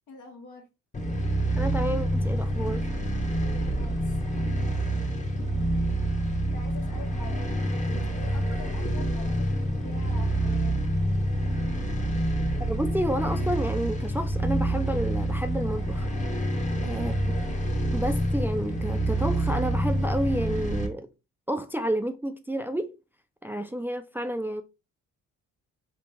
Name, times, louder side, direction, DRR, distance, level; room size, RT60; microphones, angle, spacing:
voice 1, 0.1-0.6 3.4-4.2 6.5-7.5 7.9-10.9 16.7-17.1, left 4 dB, 75° left, 1.4 m, -45 dB
sound 1, 0.9-20.9, right 1 dB, 25° left, 0.9 m, -27 dB
voice 2, 1.6-2.9 12.7-16.1 16.8-17.1 17.9-21.1 21.5-23.0 23.4-24.6, right 1 dB, 5° right, 0.4 m, -30 dB
3.2 x 3.1 x 3.4 m
cardioid pair, 90°, 30 cm